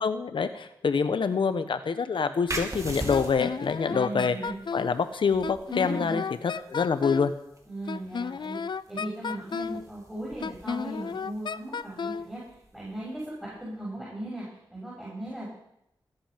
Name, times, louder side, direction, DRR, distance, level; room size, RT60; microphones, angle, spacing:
voice 1, 0.0-4.4 4.7-7.3, left 5 dB, 80° left, 10 dB, 1.1 m, -26 dB
sound 1, 2.5-13.8, right 1 dB, 40° right, 2.8 m, -43 dB
Wind instrument woodwind instrument, 3.1-5.0 5.4-7.3 7.9-9.8 10.4-12.3, left 5 dB, 65° left, 0.5 m, -33 dB
voice 2, 3.9-4.6 5.7-6.5 7.7-8.6 8.9-12.4 12.7-15.5, right 1 dB, 5° right, -8 dB, 7.2 m, -37 dB
20.0 x 8.8 x 5.3 m, 0.80 s
cardioid pair, 60°, 9 cm